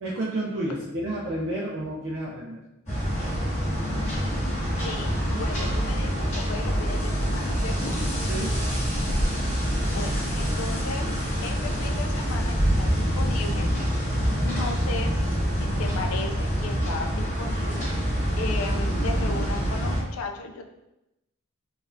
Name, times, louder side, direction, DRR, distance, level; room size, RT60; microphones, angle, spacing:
voice 1, 0.0-2.6 8.3-8.6, right 1 dB, 60° right, -6 dB, 0.5 m, -30 dB
sound 1, 2.9-20.0, equal, 30° left, 1.3 m, -26 dB
voice 2, 4.8-7.9 9.9-11.1 11.4-13.7 14.4-15.3 15.5-17.9 18.4-20.6, left 3 dB, 70° left, 5 dB, 0.4 m, -36 dB
3.9 x 2.4 x 2.6 m, 0.92 s
head